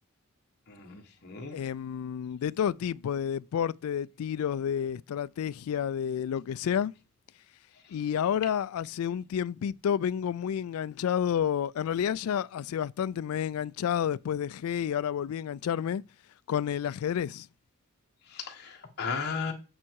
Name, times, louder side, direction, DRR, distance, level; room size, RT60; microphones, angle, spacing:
voice 1, 0.7-1.6 18.3-19.5, left 5 dB, 50° left, 1.4 m, -35 dB
voice 2, 1.5-6.9 7.9-16.0 16.5-17.5, left 8 dB, 80° left, 0.3 m, -30 dB
8.8 x 4.7 x 4.6 m
head